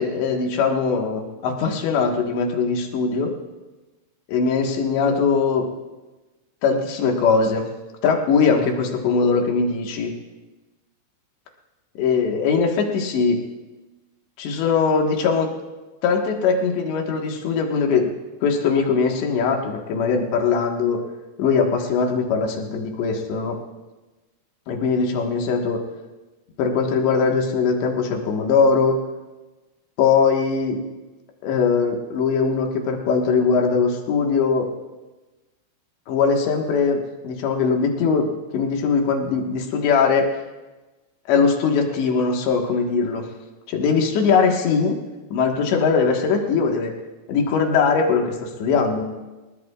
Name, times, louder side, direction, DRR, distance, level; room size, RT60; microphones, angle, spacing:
voice 1, 0.0-3.4 4.3-5.7 6.6-7.7 8.0-10.1 12.0-13.4 14.4-15.5 16.0-18.1 18.4-21.0 21.4-23.6 24.7-25.8 26.6-29.0 30.0-30.8 31.4-34.7 36.1-40.3 41.3-43.3 43.7-45.0 45.3-47.0 47.3-49.1, left 5 dB, 90° left, 1 dB, 3.9 m, -21 dB
28.0 x 19.5 x 2.4 m, 1.1 s
omnidirectional pair, 4.9 m